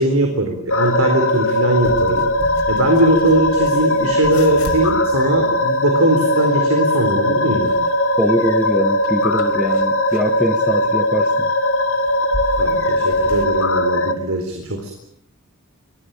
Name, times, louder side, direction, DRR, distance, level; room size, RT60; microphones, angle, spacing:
voice 1, 0.0-7.7 12.6-14.9, right 1 dB, 75° right, 5 dB, 4.0 m, -20 dB
sound 1, 0.7-14.1, left 1 dB, 65° left, 2.9 m, -19 dB
sound 2, 1.8-13.5, left 1 dB, 85° left, 4.8 m, -36 dB
voice 2, 8.2-11.5, equal, 5° right, 8 dB, 1.3 m, -22 dB
25.0 x 20.0 x 9.0 m, 0.73 s
head